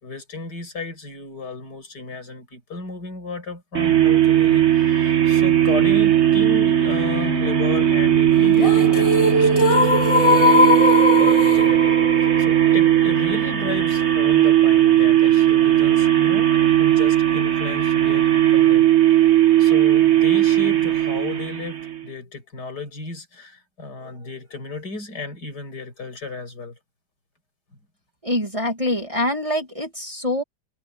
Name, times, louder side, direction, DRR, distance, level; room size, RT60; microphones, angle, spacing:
voice 1, 0.0-12.0 12.4-19.3 19.6-26.8, left 3 dB, 75° left, 6.3 m, -34 dB
sound 1, 3.7-22.0, right 11 dB, 45° right, 1.6 m, -17 dB
sound 2, 8.4-14.4, left 1 dB, 20° left, 2.9 m, -20 dB
voice 2, 28.2-30.4, left 1 dB, 20° right, 2.3 m, -24 dB
omnidirectional pair, 1.8 m